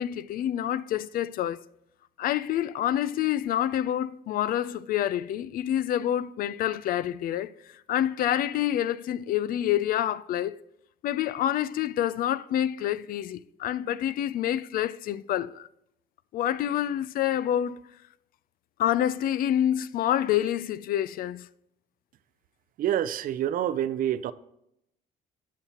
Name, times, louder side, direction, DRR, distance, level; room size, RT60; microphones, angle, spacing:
voice 1, 0.0-1.6 2.2-7.5 7.9-10.6 11.0-15.7 16.3-17.8 18.8-21.5, left 11 dB, 60° left, 0.4 m, -27 dB
voice 2, 22.8-24.3, right 11 dB, 55° right, 0.4 m, -27 dB
16.5 x 5.8 x 2.9 m
cardioid pair, 110°, 17 cm